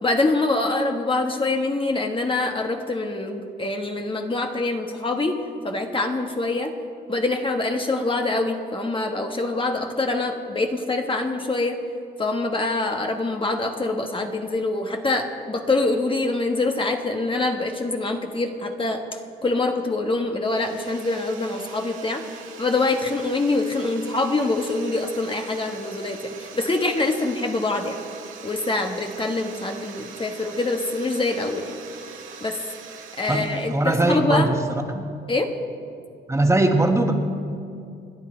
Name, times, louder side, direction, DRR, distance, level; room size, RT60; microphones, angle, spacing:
voice 1, 0.0-6.7 7.1-11.8 12.2-19.0 19.4-28.0 28.4-31.8 32.4-32.6 33.2-34.5 35.3-35.5, left 2 dB, 25° left, 3 dB, 1.4 m, -25 dB
sound 1, 20.4-33.9, right 6 dB, 85° right, 2.2 m, -42 dB
voice 2, 33.3-35.1 36.3-37.1, right 2 dB, 15° right, 3 dB, 1.7 m, -21 dB
28.5 x 9.8 x 4.5 m, 2.5 s
cardioid pair, 90°, 20 cm